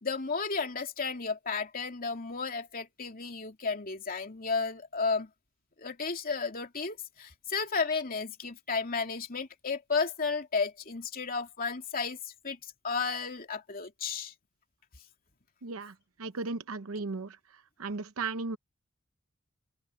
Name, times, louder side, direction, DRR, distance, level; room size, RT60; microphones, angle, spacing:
voice 1, 0.0-5.3 5.8-12.2 12.4-12.6 12.8-14.3, left 4 dB, 45° left, 2.8 m, -33 dB
voice 2, 15.6-15.9 16.2-17.4 17.8-18.6, right 3 dB, 85° right, 0.8 m, -35 dB
head